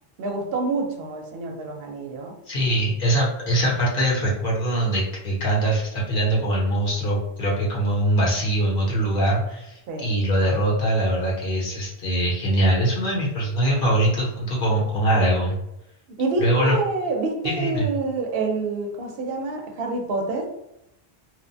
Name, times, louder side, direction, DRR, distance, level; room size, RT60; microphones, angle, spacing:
voice 1, 0.2-2.3 9.9-10.1 16.2-20.5, right 3 dB, 70° right, 2 dB, 0.8 m, -27 dB
voice 2, 2.5-15.6 16.4-16.8 17.4-17.9, right 1 dB, 65° left, -4 dB, 1.0 m, -22 dB
3.0 x 2.1 x 2.6 m, 0.83 s
omnidirectional pair, 1.0 m